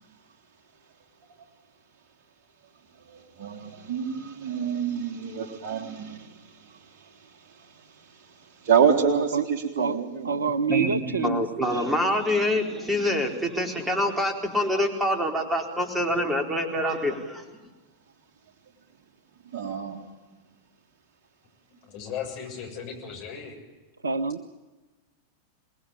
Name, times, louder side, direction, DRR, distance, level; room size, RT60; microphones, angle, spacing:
voice 1, 3.1-6.8 8.6-10.3 10.7-10.9 19.5-20.0, right 7 dB, 45° right, 4 dB, 3.7 m, -27 dB
voice 2, 9.2-9.5 9.8-10.0 10.2-11.9 24.0-24.5, right 5 dB, 75° right, 16 dB, 0.9 m, -27 dB
voice 3, 10.7-17.4, left 1 dB, 5° right, 4 dB, 4.2 m, -26 dB
voice 4, 21.8-23.6, left 7 dB, 45° left, 2 dB, 7.3 m, -36 dB
26.5 x 20.5 x 8.9 m, 1.2 s
figure-of-eight pair, 90°, 0 cm